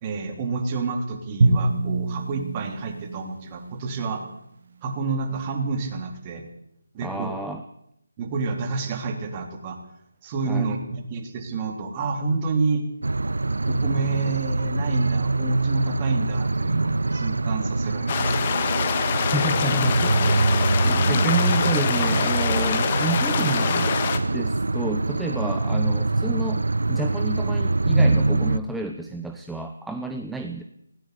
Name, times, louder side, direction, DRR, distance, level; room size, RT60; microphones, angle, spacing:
voice 1, 0.0-4.2 4.8-6.4 6.9-7.3 8.2-9.8 10.2-12.9 13.7-18.5, right 4 dB, 25° right, 4 dB, 3.6 m, -29 dB
Drum, 1.4-4.4, right 2 dB, 45° right, 2.6 m, -25 dB
voice 2, 7.0-7.6 10.4-10.7 19.3-30.6, right 2 dB, 5° right, 5 dB, 1.0 m, -31 dB
sound 1, 13.0-28.6, right 3 dB, 70° right, 0.9 m, -24 dB
sound 2, 18.1-24.2, left 6 dB, 30° left, 2.3 m, -25 dB
20.0 x 17.5 x 8.5 m, 0.75 s
figure-of-eight pair, 155°, 0 cm